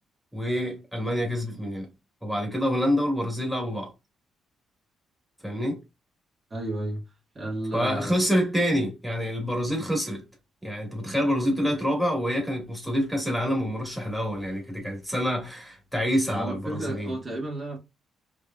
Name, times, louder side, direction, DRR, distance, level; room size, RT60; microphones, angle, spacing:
voice 1, 0.3-1.9 2.2-3.9 5.4-5.8 7.7-10.2 10.6-17.1, equal, ahead, 2.5 m, -27 dB
voice 2, 6.5-7.0 7.3-8.2 16.3-17.8, right 1 dB, 30° right, 2.5 m, -32 dB
5.0 x 3.5 x 2.7 m
cardioid pair, 90°, 0 cm